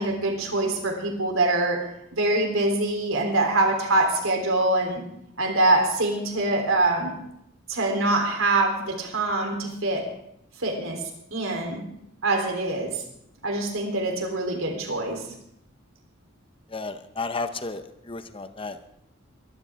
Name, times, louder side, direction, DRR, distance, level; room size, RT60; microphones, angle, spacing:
voice 1, 0.0-5.0 5.4-7.1 7.7-10.1 10.6-11.0 11.3-11.8 12.2-13.0 13.4-15.2, right 2 dB, 80° right, 2 dB, 3.5 m, -24 dB
voice 2, 16.7-18.9, left 3 dB, 25° left, 9 dB, 0.8 m, -33 dB
22.5 x 12.0 x 3.6 m, 0.77 s
head